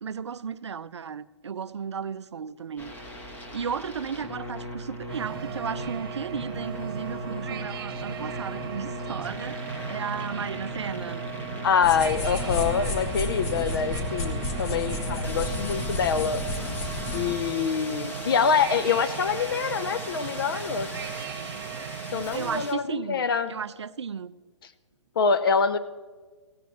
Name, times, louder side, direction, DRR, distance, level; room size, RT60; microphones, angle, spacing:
voice 1, 0.0-2.9 3.3-11.3 22.3-24.4, right 6 dB, 65° right, 0.4 m, -34 dB
sound 1, 2.8-22.7, left 1 dB, 10° left, 1.2 m, -39 dB
sound 2, 5.1-22.7, right 8 dB, 45° right, 1.1 m, -37 dB
voice 2, 11.6-16.4 17.1-20.9 22.1-23.5 25.2-25.8, left 6 dB, 50° left, 0.6 m, -25 dB
sound 3, 11.8-17.3, left 2 dB, 30° left, 1.7 m, -31 dB
19.5 x 16.0 x 3.0 m
figure-of-eight pair, 125°, 15 cm